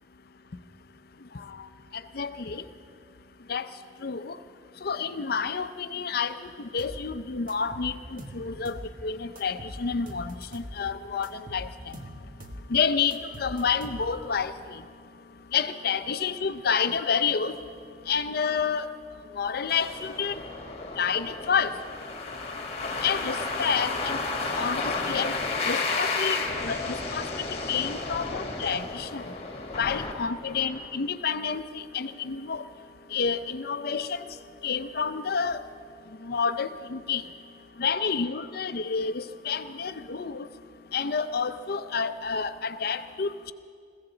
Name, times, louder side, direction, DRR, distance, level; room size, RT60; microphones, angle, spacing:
voice 1, 2.1-2.6 3.5-3.7 4.0-4.4 4.8-12.0 12.7-14.8 15.5-17.6 18.1-18.9 19.3-20.4 21.0-21.7 23.0-24.2 24.5-29.2 29.8-32.6 33.1-34.3 34.6-35.6 36.2-37.2 37.8-40.5 40.9-43.5, left 6 dB, 60° left, 11 dB, 0.6 m, -29 dB
sound 1, 6.8-7.0 7.5-8.9 9.3-10.8 11.2-12.7 13.1-14.3, equal, 50° right, 1.2 m, -42 dB
sound 2, 19.7-30.9, left 3 dB, 35° left, 1.6 m, -32 dB
21.0 x 16.0 x 3.9 m, 2.2 s
head